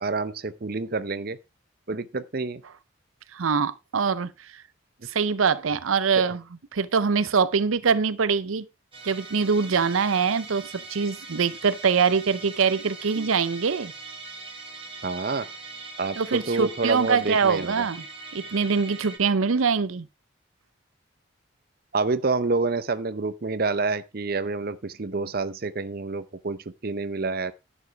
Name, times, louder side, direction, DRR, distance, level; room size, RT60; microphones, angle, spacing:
voice 1, 0.0-1.4 1.9-2.6 6.2-6.3 15.0-15.5 16.0-17.8 21.9-27.5, right 3 dB, 50° right, 0.7 m, -28 dB
voice 2, 3.3-4.6 5.0-6.4 6.7-8.6 9.0-13.9 16.2-18.0 18.3-20.1, right 5 dB, 90° right, 0.6 m, -24 dB
Musical instrument, 8.9-19.2, right 3 dB, 25° right, 2.0 m, -41 dB
10.5 x 7.2 x 4.3 m
head